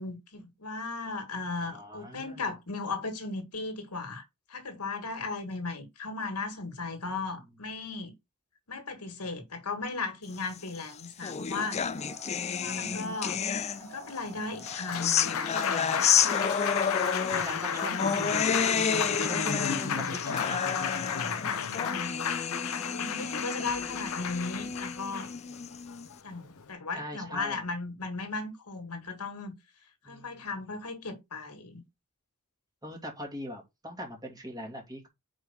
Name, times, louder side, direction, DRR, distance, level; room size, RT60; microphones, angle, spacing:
voice 1, 0.0-4.2 4.5-8.1 8.7-11.9 12.5-13.4 13.8-16.4 19.7-20.1 21.4-22.2 22.9-25.3 26.2-29.5 30.0-31.8, left 3 dB, 85° left, 1.9 m, -37 dB
voice 2, 1.6-2.5 12.6-12.9 15.7-16.0 17.3-18.8 19.1-20.7 21.6-22.1 26.9-27.6 30.0-30.5 32.8-35.1, equal, 15° right, 2.5 m, -41 dB
sound 1, 10.7-14.1 14.6-26.1, left 7 dB, 30° left, 0.4 m, -31 dB
sound 2, 11.5-20.6, equal, 85° right, 2.5 m, -50 dB
Applause, 14.5-26.7, left 6 dB, 70° left, 0.8 m, -33 dB
5.1 x 4.7 x 5.4 m
head